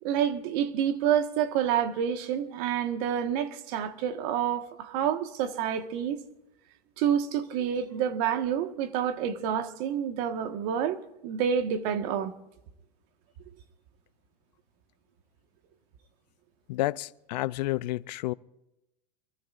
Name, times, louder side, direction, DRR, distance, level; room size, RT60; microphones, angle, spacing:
voice 1, 0.0-6.2 7.0-12.3, right 9 dB, 65° right, 1.5 m, -28 dB
voice 2, 16.7-18.3, left 18 dB, 75° left, 0.5 m, -30 dB
24.0 x 22.0 x 2.5 m
hypercardioid pair, 110°, 21 cm